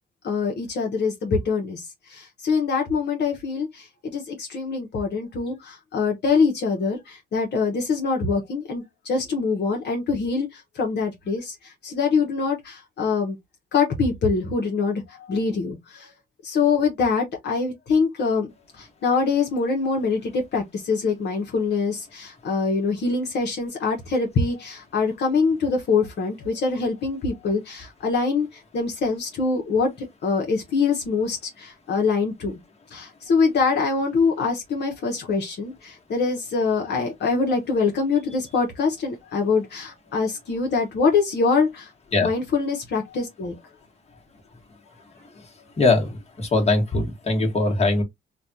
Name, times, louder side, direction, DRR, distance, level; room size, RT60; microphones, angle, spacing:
voice 1, 0.2-1.8 2.1-3.9 4.1-11.5 11.8-13.4 13.7-15.0 15.3-16.1 16.4-18.5 18.8-29.9 30.2-32.6 32.9-41.9 42.2-43.5, left 4 dB, 60° left, 0.9 m, -24 dB
voice 2, 45.8-48.0, left 3 dB, 30° left, 1.3 m, -21 dB
3.2 x 2.3 x 2.6 m
cardioid pair, 90°, 20 cm